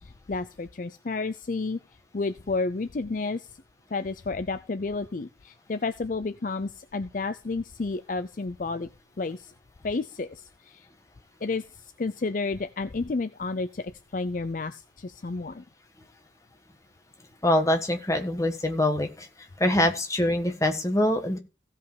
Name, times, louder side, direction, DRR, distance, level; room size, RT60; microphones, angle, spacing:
voice 1, 0.0-1.8 2.1-3.5 3.9-8.9 9.2-9.5 9.8-10.9 11.4-11.6 12.0-15.6, left 3 dB, 45° left, 12 dB, 0.5 m, -31 dB
voice 2, 17.4-19.3 19.6-21.4, left 1 dB, 15° left, 5 dB, 1.5 m, -24 dB
15.5 x 5.4 x 5.0 m, 0.30 s
head